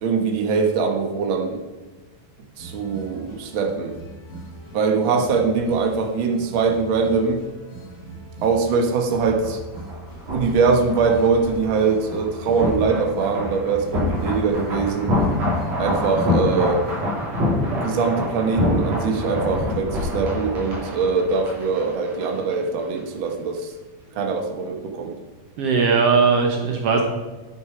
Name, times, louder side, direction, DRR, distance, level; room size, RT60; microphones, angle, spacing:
voice 1, 0.0-1.6 2.6-3.9 4.7-7.4 8.4-9.6 10.3-15.2 15.8-16.8 17.8-23.7 24.1-25.1, right 5 dB, 70° right, 3 dB, 1.2 m, -22 dB
sound 1, 2.6-17.0, right 2 dB, 25° left, 3.4 m, -39 dB
sound 2, 8.8-22.6 22.8-23.0, left 1 dB, 45° right, 4.0 m, -26 dB
voice 2, 25.6-27.0, right 5 dB, 90° right, 2 dB, 1.3 m, -18 dB
9.6 x 9.3 x 4.9 m, 1.3 s
omnidirectional pair, 4.3 m